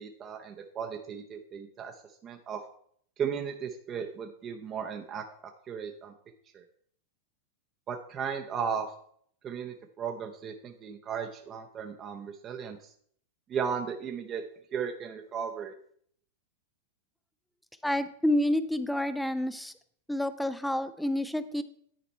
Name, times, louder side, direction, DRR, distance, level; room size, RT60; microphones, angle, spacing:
voice 1, 0.0-1.9 2.2-2.6 3.2-5.2 5.7-6.1 6.5-6.6 7.9-8.9 9.4-12.9 13.5-14.4 14.7-15.7, right 7 dB, 30° right, 4 dB, 0.7 m, -35 dB
voice 2, 17.8-19.7 20.1-21.6, left 1 dB, ahead, 12 dB, 0.5 m, -29 dB
10.5 x 4.2 x 4.2 m, 0.63 s
hypercardioid pair, 110°, 0 cm